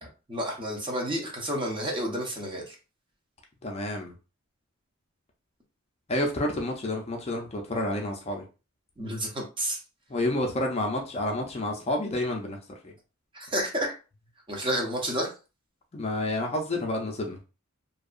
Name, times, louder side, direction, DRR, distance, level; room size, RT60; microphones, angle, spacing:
voice 1, 0.0-2.8 9.0-9.8 13.3-13.9 14.5-15.3, right 1 dB, 25° right, 0 dB, 0.7 m, -30 dB
voice 2, 3.6-4.1 6.1-8.4 10.1-12.6 12.8-12.9 15.9-17.4, left 1 dB, 30° left, 1 dB, 0.5 m, -29 dB
2.7 x 2.2 x 2.4 m, 0.32 s
head